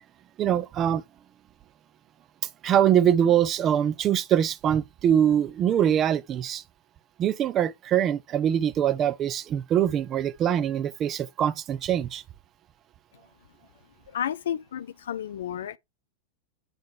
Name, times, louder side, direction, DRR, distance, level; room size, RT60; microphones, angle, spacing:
voice 1, 0.4-1.0 2.6-6.6 7.2-12.2, right 9 dB, 30° right, 0.7 m, -23 dB
voice 2, 14.1-15.8, left 9 dB, 60° left, 0.6 m, -32 dB
9.7 x 3.9 x 4.7 m
figure-of-eight pair, 90°, 0 cm